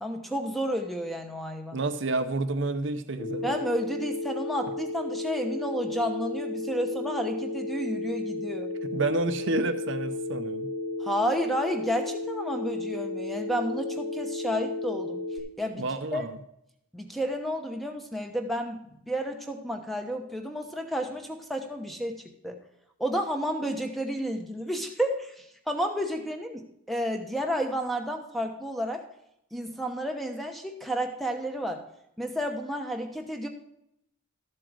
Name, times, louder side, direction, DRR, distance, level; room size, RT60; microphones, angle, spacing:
voice 1, 0.0-1.8 3.4-8.7 11.0-15.2 15.6-15.8 16.1-16.2 16.9-18.8 19.1-22.2 22.4-22.6 23.0-29.0 29.5-31.8 32.2-33.5, equal, ahead, 4 dB, 0.9 m, -31 dB
voice 2, 1.7-3.5 8.9-10.7 15.8-16.3, right 2 dB, 55° right, 8 dB, 0.7 m, -29 dB
Telephone, 3.2-15.4, left 3 dB, 25° left, 2.6 m, -33 dB
13.0 x 7.7 x 4.8 m, 0.80 s
head